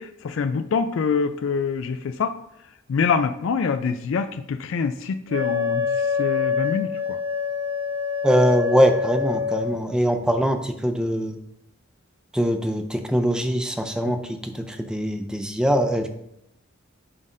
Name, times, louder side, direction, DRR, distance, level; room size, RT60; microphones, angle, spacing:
voice 1, 0.0-2.3 2.9-7.2, left 5 dB, 70° left, 9 dB, 0.4 m, -25 dB
Wind instrument woodwind instrument, 5.3-9.8, left 6 dB, 60° right, 1.5 m, -25 dB
voice 2, 8.2-11.4 12.3-16.1, equal, 5° right, 6 dB, 0.4 m, -22 dB
11.0 x 4.0 x 2.6 m, 0.79 s
head